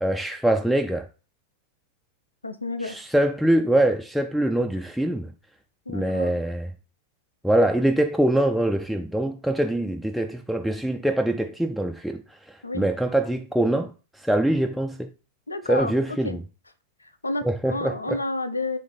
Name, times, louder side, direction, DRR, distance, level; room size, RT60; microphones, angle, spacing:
voice 1, 0.0-1.1 2.8-5.3 5.9-6.7 7.4-12.2 12.7-15.1 15.7-16.4 17.4-18.2, right 1 dB, ahead, 0.3 m, -23 dB
voice 2, 2.4-3.0 5.9-6.3 12.6-12.9 15.5-15.9 16.2-16.4 17.2-18.8, left 2 dB, 80° left, 0.4 m, -30 dB
3.2 x 3.2 x 4.0 m
figure-of-eight pair, 90°, 0 cm